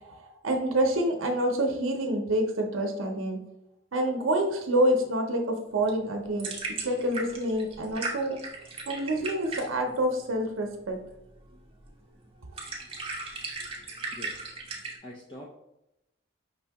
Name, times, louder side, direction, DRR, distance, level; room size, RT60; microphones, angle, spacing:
voice 1, 0.0-3.4 3.9-6.5 6.8-8.4 8.9-11.0, right 1 dB, 80° right, 3 dB, 0.6 m, -27 dB
sound 1, 5.7-15.0, right 3 dB, 25° right, 0.7 m, -38 dB
voice 2, 14.1-14.4 15.0-15.6, left 1 dB, 25° left, -3 dB, 0.5 m, -44 dB
5.3 x 2.7 x 3.4 m, 0.85 s
head